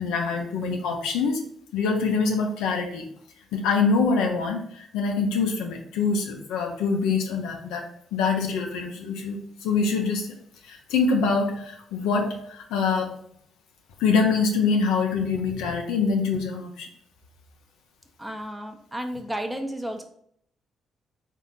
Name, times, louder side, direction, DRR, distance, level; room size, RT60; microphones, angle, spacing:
voice 1, 0.0-1.4 1.7-3.1 3.5-7.8 8.1-10.3 10.6-13.2 14.0-16.9, left 4 dB, 90° left, 2 dB, 0.7 m, -25 dB
voice 2, 18.2-20.0, equal, 10° right, 5 dB, 0.7 m, -32 dB
4.0 x 2.8 x 3.8 m, 0.66 s
supercardioid pair, 65°, 0 cm